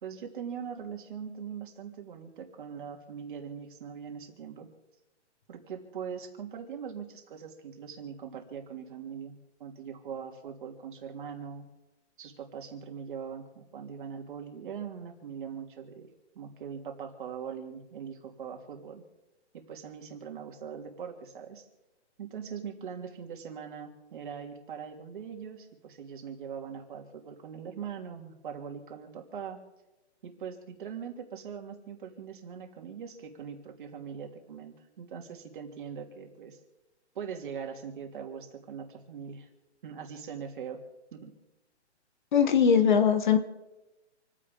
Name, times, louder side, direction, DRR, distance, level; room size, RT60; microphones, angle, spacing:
voice 1, 0.0-4.7 5.5-11.7 12.2-16.1 16.3-19.0 19.5-21.6 22.2-29.6 30.2-36.6 37.1-39.5 39.8-40.8 41.1-41.3, right 7 dB, 45° right, 3 dB, 3.0 m, -41 dB
voice 2, 42.3-43.4, left 7 dB, 40° left, 9 dB, 1.2 m, -21 dB
28.5 x 10.0 x 3.8 m, 1.1 s
hypercardioid pair, 165°, 35 cm